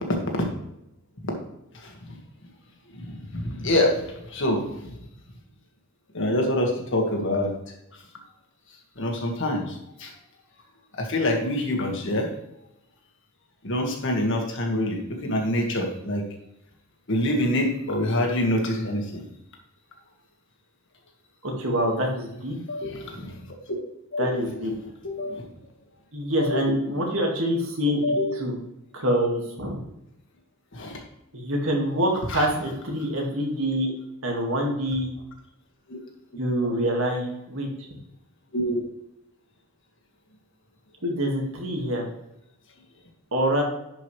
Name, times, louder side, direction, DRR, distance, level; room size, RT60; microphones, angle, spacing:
voice 1, 3.3-3.9 4.3-4.6 6.1-7.5 9.0-10.1 11.0-12.3 13.6-16.2 17.1-19.2 22.7-23.3 24.1-24.4 25.0-25.4 26.5-26.8 28.0-28.3 30.7-31.0 32.3-32.5 35.9-36.0 38.5-38.8, left 1 dB, 55° left, 1 dB, 1.8 m, -25 dB
voice 2, 21.4-22.6 22.8-22.9 24.2-24.7 26.1-28.0 28.3-28.6 28.9-29.8 31.3-33.9 34.2-35.1 36.4-37.7 41.0-42.1 43.3-43.6, equal, 65° right, 1 dB, 2.0 m, -26 dB
11.0 x 5.3 x 3.3 m, 0.84 s
head